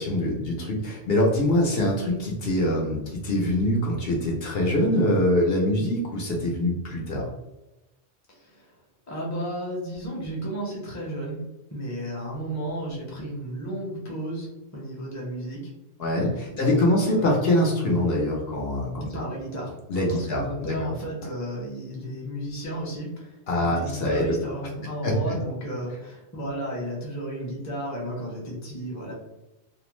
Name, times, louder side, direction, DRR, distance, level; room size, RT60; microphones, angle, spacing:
voice 1, 0.0-7.3 16.0-19.1 19.9-20.7 23.5-24.3 25.0-25.1, left 1 dB, 65° left, -2 dB, 0.8 m, -24 dB
voice 2, 8.3-8.7 9.1-11.4 11.7-15.7 16.5-17.2 19.1-19.8 20.1-29.1, right 1 dB, 20° left, -4 dB, 0.6 m, -33 dB
2.5 x 2.0 x 3.0 m, 0.97 s
omnidirectional pair, 1.2 m